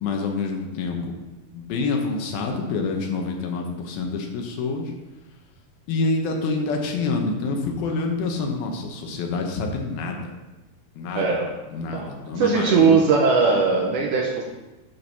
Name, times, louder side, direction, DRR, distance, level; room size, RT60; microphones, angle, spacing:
voice 1, 0.0-1.1 1.5-4.9 5.9-10.2 11.0-11.3 11.7-13.0, left 3 dB, 80° left, 2 dB, 2.9 m, -27 dB
voice 2, 11.1-11.5 11.9-14.4, right 5 dB, 70° right, 0 dB, 2.0 m, -20 dB
10.0 x 4.6 x 5.4 m, 1.1 s
omnidirectional pair, 4.3 m